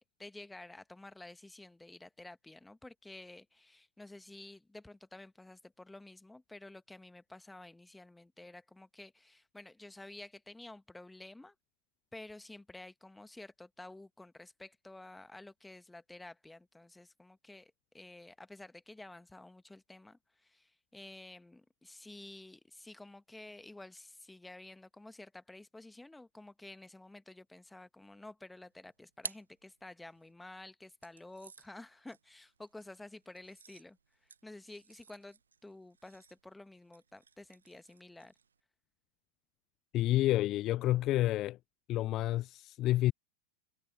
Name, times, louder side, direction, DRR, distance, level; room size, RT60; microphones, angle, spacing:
voice 1, 0.0-11.5 12.1-38.3, left 2 dB, 5° left, 1.7 m, -51 dB
sound 1, 28.5-30.3 31.0-38.6, right 6 dB, 70° right, 1.2 m, -53 dB
voice 2, 39.9-41.6 41.9-43.1, left 15 dB, 35° left, 0.3 m, -29 dB
figure-of-eight pair, 90°, 0 cm